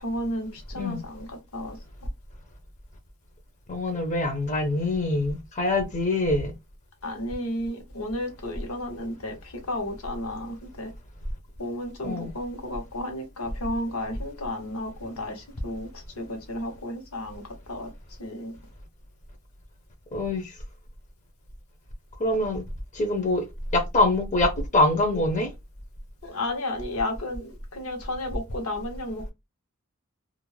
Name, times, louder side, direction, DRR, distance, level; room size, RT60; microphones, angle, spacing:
voice 1, 0.0-1.8 7.0-10.9 11.6-17.4 17.7-17.9 18.2-18.6 26.2-29.3, left 1 dB, 80° left, 1.0 m, -33 dB
voice 2, 3.7-6.5 12.0-12.3 20.1-20.6 22.2-22.6 22.9-23.5 23.7-25.5, left 2 dB, 35° left, 0.6 m, -24 dB
2.4 x 2.0 x 3.0 m
head